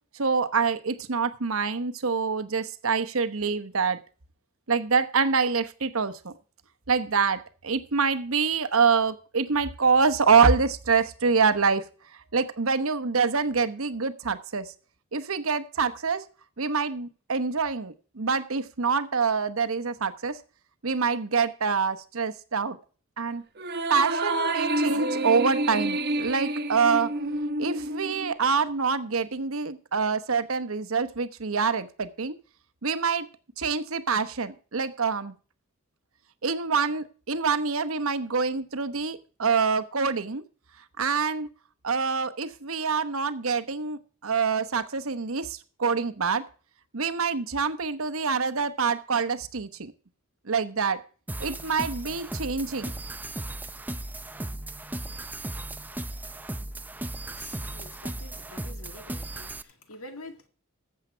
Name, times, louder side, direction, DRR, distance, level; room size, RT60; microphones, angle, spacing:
voice 1, 0.1-4.0 4.7-6.3 6.9-11.8 12.3-14.7 15.1-16.2 16.6-20.4 20.8-22.8 23.2-23.4 23.9-27.1 27.6-32.3 32.8-33.3 33.6-35.3 36.4-40.4 41.0-41.5 41.8-46.4 46.9-49.9 50.5-51.0 51.4-52.9, right 5 dB, 70° right, 12 dB, 1.0 m, -26 dB
sound 1, 23.6-28.3, right 2 dB, 50° right, 1.2 m, -28 dB
sound 2, 51.3-59.6, right 1 dB, 10° right, 0.5 m, -36 dB
voice 2, 57.3-60.5, left 2 dB, 70° left, 7 dB, 2.2 m, -46 dB
14.5 x 7.5 x 4.5 m, 0.39 s
head